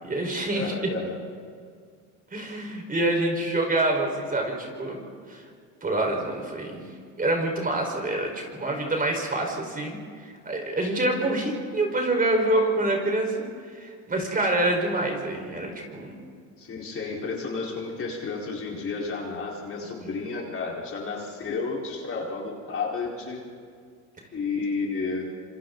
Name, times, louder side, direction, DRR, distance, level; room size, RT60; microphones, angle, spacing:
voice 1, 0.0-0.7 2.3-5.0 5.3-5.4 5.8-6.8 7.2-10.0 10.2-13.4 13.8-16.2, right 2 dB, 20° right, 2 dB, 4.9 m, -26 dB
voice 2, 0.5-1.2 16.6-23.4 24.3-25.3, left 4 dB, 35° left, -3 dB, 4.6 m, -31 dB
27.0 x 25.5 x 4.0 m, 2.1 s
supercardioid pair, 95°, 38 cm